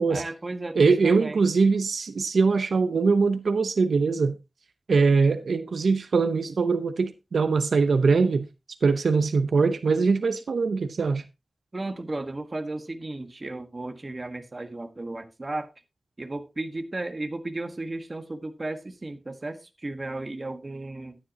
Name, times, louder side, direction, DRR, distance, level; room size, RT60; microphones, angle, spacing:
voice 1, 0.1-1.4 11.7-15.7 16.2-21.2, right 2 dB, 30° right, 1.5 m, -34 dB
voice 2, 0.8-4.3 4.9-8.5 8.8-11.2, right 4 dB, 80° right, 0.8 m, -22 dB
12.5 x 9.9 x 2.9 m
wide cardioid pair, 115°, 0 cm